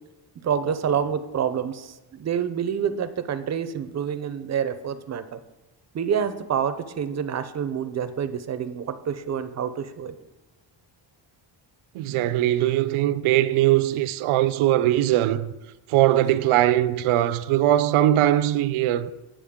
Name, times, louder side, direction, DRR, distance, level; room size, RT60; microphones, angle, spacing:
voice 1, 0.4-5.4 5.9-10.1, right 8 dB, 35° right, 0.5 m, -27 dB
voice 2, 11.9-15.5 15.9-19.1, right 13 dB, 85° right, 0.5 m, -21 dB
8.6 x 6.9 x 3.6 m
cardioid pair, 130°, 48 cm